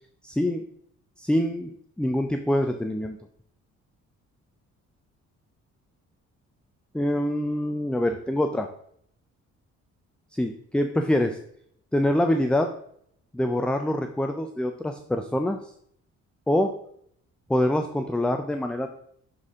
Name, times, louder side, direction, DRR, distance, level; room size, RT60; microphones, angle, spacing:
voice 1, 0.2-0.6 1.2-3.2 6.9-8.7 10.3-11.4 11.9-12.7 13.3-15.6 16.5-16.7 17.5-18.9, left 1 dB, 5° left, 6 dB, 0.4 m, -25 dB
6.6 x 4.3 x 3.6 m, 0.68 s
cardioid pair, 90°, 30 cm